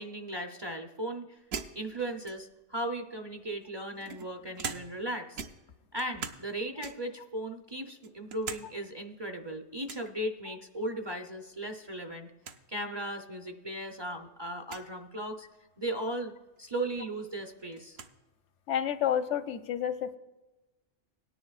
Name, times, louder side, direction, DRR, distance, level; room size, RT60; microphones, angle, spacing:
voice 1, 0.0-1.4 1.7-5.4 5.9-12.3 12.7-15.5 15.8-16.3 16.6-18.0, right 1 dB, 30° right, 4 dB, 0.6 m, -37 dB
sound 1, 1.5-2.7 3.5-5.1 5.4-6.5 6.8-7.2 7.7-8.7 9.0-9.1 9.9-10.1 11.6-11.9 12.2-12.3 12.4-12.6 13.4-13.5 14.6-14.9 16.6-16.7 17.0-18.2, right 6 dB, 65° right, 0.9 m, -42 dB
voice 2, 18.7-20.2, left 9 dB, 85° left, 10 dB, 1.0 m, -30 dB
18.0 x 10.0 x 2.4 m, 1.1 s
omnidirectional pair, 1.2 m